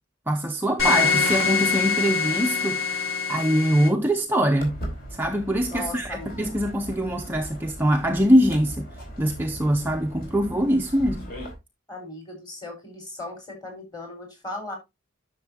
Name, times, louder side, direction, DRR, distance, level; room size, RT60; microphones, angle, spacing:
voice 1, 0.3-3.0 3.3-4.8 5.1-11.3, equal, 10° right, 0.6 m, -23 dB
sound 1, 0.8-3.9, left 5 dB, 70° left, 3.4 m, -24 dB
Walk footsteps, 4.6-11.5, right 1 dB, 45° left, 4.2 m, -39 dB
voice 2, 5.7-6.4 11.9-14.8, left 2 dB, 20° left, 4.6 m, -37 dB
10.5 x 6.5 x 2.8 m
head